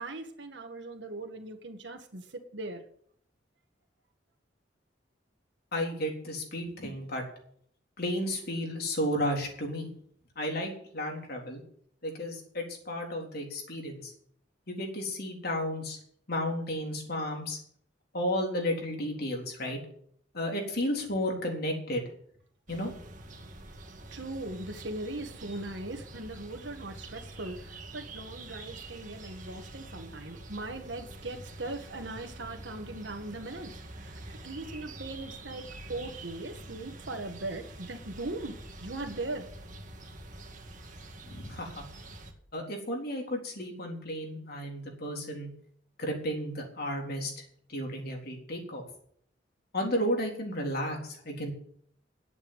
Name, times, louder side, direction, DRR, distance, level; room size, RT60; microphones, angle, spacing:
voice 1, 0.0-2.3 2.5-2.8 24.1-33.7 34.0-38.5 38.8-39.5, right 2 dB, 70° right, 4 dB, 1.7 m, -39 dB
voice 2, 5.7-7.2 8.0-9.9 10.4-11.6 12.0-14.1 14.7-16.0 16.3-17.6 18.1-19.8 20.3-22.0 22.7-22.9 41.2-41.8 42.5-45.5 46.0-47.4 47.7-48.8 49.7-51.5, equal, 60° left, 1 dB, 3.8 m, -33 dB
sound 1, 22.7-42.3, right 2 dB, 45° right, 2.1 m, -46 dB
10.5 x 8.4 x 9.7 m, 0.62 s
head